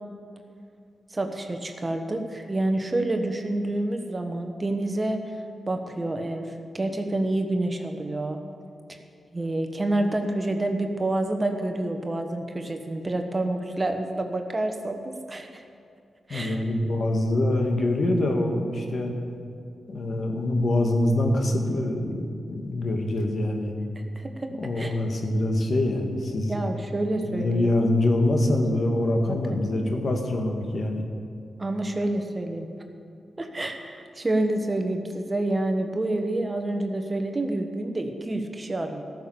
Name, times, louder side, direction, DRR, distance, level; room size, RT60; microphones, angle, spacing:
voice 1, 1.1-5.2 5.6-8.4 8.9-9.0 9.3-15.6 16.3-16.6 24.0-24.5 24.7-24.9 26.5-27.7 29.3-29.6 31.6-32.7 33.4-39.0, right 1 dB, 35° right, 5 dB, 1.2 m, -28 dB
voice 2, 16.3-19.1 19.9-23.7 24.6-26.5 27.2-31.0, left 1 dB, 60° left, 3 dB, 1.8 m, -24 dB
13.5 x 7.0 x 8.7 m, 2.4 s
supercardioid pair, 45°, 0 cm